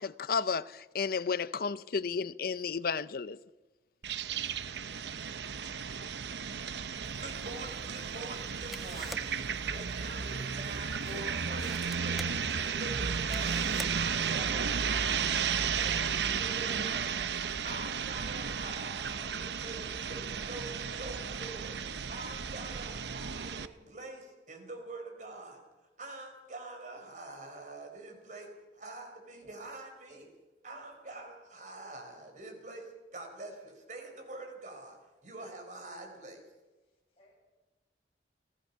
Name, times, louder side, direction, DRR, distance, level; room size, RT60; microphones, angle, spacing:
voice 1, 0.0-3.4, left 5 dB, 55° left, 0.6 m, -32 dB
sound 1, 4.0-23.7, right 6 dB, 75° right, 0.8 m, -34 dB
sound 2, 7.0-14.6, equal, ahead, 0.7 m, -50 dB
voice 2, 7.1-9.4 9.7-12.2 12.6-13.6 13.9-17.3 17.6-19.8 20.1-21.8 22.1-25.6 26.0-28.5 28.7-30.3 30.6-36.4, right 2 dB, 45° right, 4.6 m, -45 dB
voice 3, 36.8-37.3, left 1 dB, 35° left, 7.4 m, -65 dB
29.5 x 16.0 x 5.7 m
head